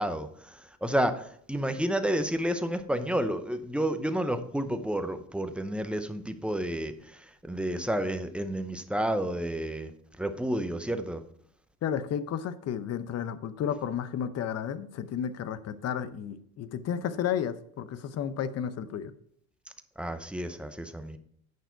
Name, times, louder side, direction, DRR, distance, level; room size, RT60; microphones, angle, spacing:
voice 1, 0.0-9.9 10.2-11.2 20.0-21.2, right 1 dB, 5° right, 8 dB, 0.8 m, -30 dB
voice 2, 11.8-19.1, left 8 dB, 50° left, 14 dB, 0.8 m, -32 dB
9.5 x 5.7 x 4.5 m, 0.65 s
supercardioid pair, 95°, 33 cm